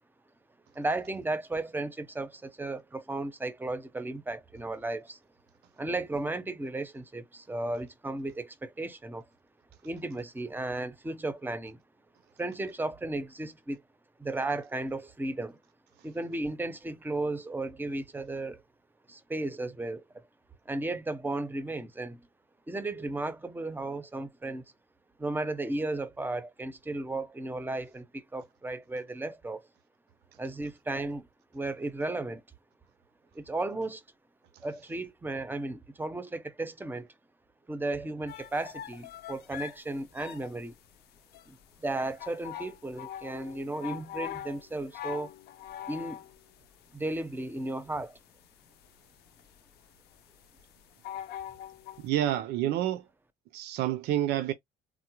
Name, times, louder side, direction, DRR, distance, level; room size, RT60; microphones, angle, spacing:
voice 1, 0.7-5.2 5.8-9.3 9.8-11.8 12.4-13.8 14.2-15.6 16.0-18.6 19.1-20.2 20.7-22.2 22.7-24.6 25.2-29.7 30.4-31.3 31.5-32.4 33.3-34.0 34.6-37.1 37.7-40.7 41.5-45.3 45.9-46.3 46.9-48.2, right 2 dB, 10° right, 0.6 m, -34 dB
sound 1, 38.3-52.1, left 11 dB, 70° left, 0.6 m, -43 dB
voice 2, 52.0-53.0 53.5-54.5, right 12 dB, 75° right, 0.5 m, -28 dB
3.6 x 2.0 x 2.9 m
cardioid pair, 110°, 17 cm